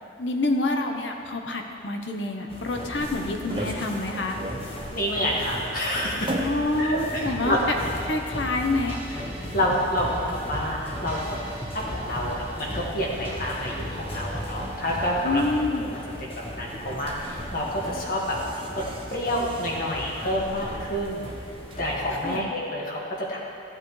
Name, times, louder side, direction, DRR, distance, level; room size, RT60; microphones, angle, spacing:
voice 1, 0.2-4.4 6.4-7.6 8.0-9.0 15.2-15.9 22.2-22.5, left 2 dB, 70° left, 3 dB, 0.9 m, -27 dB
sound 1, 2.5-22.4, left 1 dB, 30° left, 1.1 m, -38 dB
sound 2, 2.7-21.8, right 1 dB, 25° right, 0.8 m, -42 dB
voice 2, 4.9-6.4 6.8-7.9 9.5-11.4 11.7-15.4 15.8-15.9 16.2-18.4 18.7-18.8 19.1-21.3 21.8-23.4, equal, 45° left, -3 dB, 1.8 m, -28 dB
sound 3, 7.1-15.5, equal, 10° right, 1.2 m, -37 dB
15.0 x 8.7 x 3.2 m, 2.4 s
head